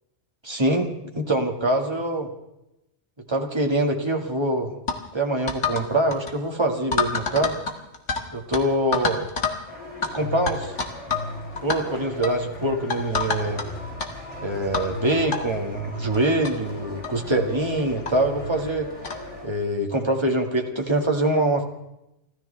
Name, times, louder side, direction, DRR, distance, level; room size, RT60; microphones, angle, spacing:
voice 1, 0.4-2.3 3.3-4.7 5.1-7.5 8.3-9.3 10.1-10.7 11.6-13.6 14.4-18.9 19.4-21.6, right 1 dB, 25° right, 2 dB, 2.0 m, -24 dB
sound 1, 4.9-5.0 5.5-5.9 6.1-6.3 6.9-8.2 8.5-8.6 8.9-9.6 10.0-10.1 10.5-11.3 11.6-11.8 12.2-12.4 12.9-13.7 14.0-14.1 14.7-14.9 15.3-15.4 16.1-16.2 16.4-16.5 17.0-17.2 18.1-18.2 19.0-19.2, left 5 dB, 90° left, 2.2 m, -26 dB
sound 2, 9.7-19.5, left 1 dB, 30° left, 3.0 m, -37 dB
29.5 x 14.5 x 3.4 m, 0.87 s
omnidirectional pair, 1.2 m